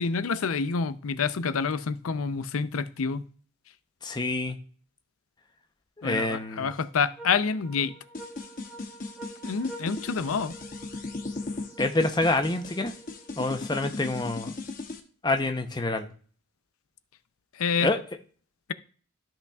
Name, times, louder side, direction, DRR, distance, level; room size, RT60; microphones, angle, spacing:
voice 1, 0.0-3.2 6.0-7.9 9.4-10.5 17.6-17.9, left 5 dB, 85° left, 14 dB, 0.5 m, -28 dB
voice 2, 4.0-4.6 6.0-6.7 11.8-12.9 13.4-14.5 15.2-16.1 17.8-18.0, left 2 dB, 20° left, 6 dB, 0.6 m, -27 dB
sound 1, 6.2-13.7, right 2 dB, 5° right, 1.4 m, -48 dB
sound 2, 8.1-15.0, left 3 dB, 40° left, 0.9 m, -37 dB
13.0 x 5.8 x 2.3 m, 0.42 s
head